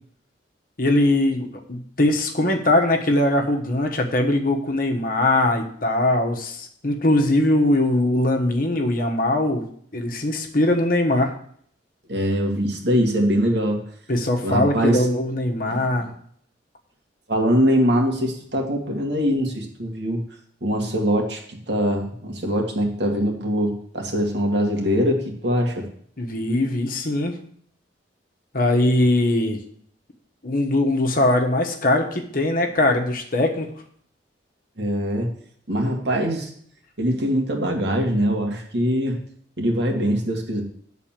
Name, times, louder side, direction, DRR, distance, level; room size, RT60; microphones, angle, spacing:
voice 1, 0.8-9.6 9.9-11.3 14.1-16.1 26.2-27.4 28.5-29.6 30.4-33.7, left 1 dB, 50° left, 2 dB, 1.3 m, -21 dB
voice 2, 12.1-13.8 14.4-15.1 15.7-16.1 17.3-20.2 20.6-25.9 34.8-35.3 35.7-36.5 37.0-39.2 39.6-40.6, equal, 65° right, 1 dB, 1.9 m, -22 dB
10.5 x 4.1 x 7.4 m, 0.62 s
head